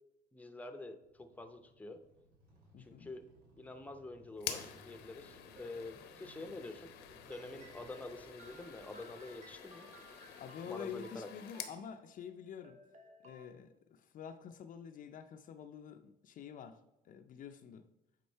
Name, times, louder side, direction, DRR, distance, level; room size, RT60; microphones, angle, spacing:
voice 1, 0.3-2.0 2.8-3.2 3.6-6.9 7.2-9.9 10.6-11.3, left 2 dB, 10° left, 8 dB, 0.7 m, -47 dB
sound 1, 1.0-11.0, right 1 dB, 70° right, 2.7 m, -66 dB
voice 2, 2.7-3.1 10.4-12.8 13.2-16.8 17.0-17.9, left 8 dB, 50° left, 7 dB, 0.5 m, -48 dB
sound 2, 4.4-11.8, left 9 dB, 85° left, 0.8 m, -49 dB
sound 3, 5.3-6.6 7.3-13.5, right 2 dB, 40° right, 1.1 m, -60 dB
8.6 x 3.7 x 4.5 m, 0.91 s
cardioid pair, 110°, 17 cm